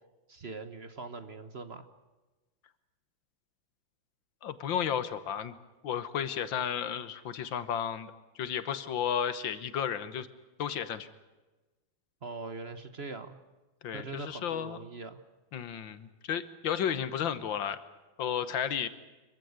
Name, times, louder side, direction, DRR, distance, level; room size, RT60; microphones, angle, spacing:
voice 1, 0.3-1.9 12.2-13.4 13.9-15.2, right 3 dB, 40° right, 10 dB, 1.2 m, -42 dB
voice 2, 4.4-5.6 5.8-10.3 10.6-11.1 13.8-14.8 15.5-17.8 18.2-18.9, left 8 dB, 85° left, 14 dB, 2.0 m, -33 dB
25.5 x 15.5 x 9.6 m, 1.2 s
omnidirectional pair, 2.0 m